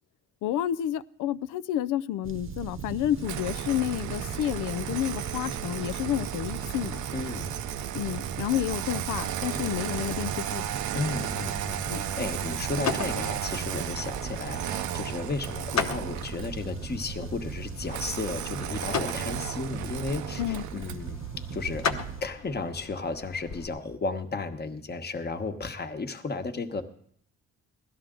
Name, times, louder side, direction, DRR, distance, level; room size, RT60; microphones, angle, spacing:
voice 1, 0.4-7.0 7.9-10.6 11.9-12.0 20.4-20.6, left 12 dB, 85° left, 0.5 m, -30 dB
sound 1, 2.2-22.2, right 7 dB, 45° right, 0.9 m, -38 dB
Engine starting, 3.2-16.6 17.9-21.1, right 11 dB, 75° right, 0.7 m, -35 dB
voice 2, 7.1-7.5 9.5-9.7 10.9-21.9 22.2-26.8, left 3 dB, 35° left, 1.2 m, -34 dB
sound 2, 11.1-23.7, left 5 dB, 65° left, 1.1 m, -37 dB
16.5 x 12.5 x 3.8 m
cardioid pair, 90°, 30 cm